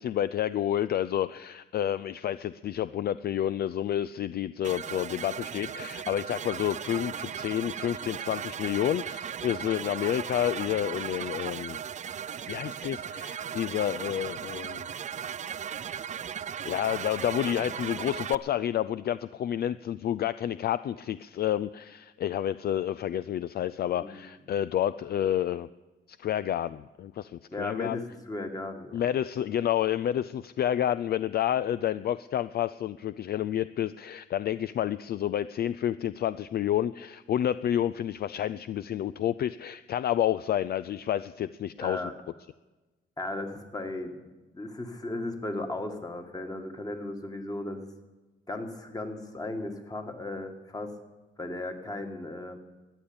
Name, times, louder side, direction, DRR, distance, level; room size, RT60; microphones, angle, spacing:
voice 1, 0.0-11.8 12.4-14.9 16.6-25.7 26.1-28.0 28.9-42.0, left 11 dB, 50° left, 14 dB, 0.4 m, -29 dB
sound 1, 4.6-18.4, right 8 dB, 35° right, 0.4 m, -37 dB
voice 2, 24.0-24.3 27.5-29.0 41.8-42.1 43.2-44.2 44.5-47.9 48.5-50.9 51.4-52.6, left 2 dB, 20° left, 5 dB, 2.0 m, -36 dB
14.0 x 10.0 x 8.8 m, 1.2 s
cardioid pair, 90°, 20 cm